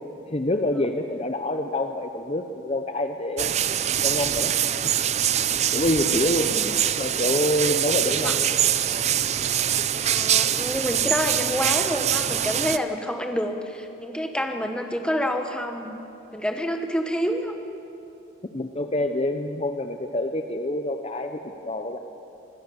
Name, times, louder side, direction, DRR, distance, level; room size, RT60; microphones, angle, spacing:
voice 1, 0.3-3.6 4.0-4.5 5.7-6.6 7.0-8.5 18.5-22.0, left 1 dB, 30° left, 6 dB, 0.7 m, -26 dB
sound 1, 3.4-12.8, right 10 dB, 35° right, 0.5 m, -24 dB
voice 2, 6.1-7.0 8.1-8.3 10.0-16.0 16.3-17.5, equal, 5° left, 5 dB, 1.2 m, -28 dB
25.0 x 15.5 x 7.0 m, 2.8 s
head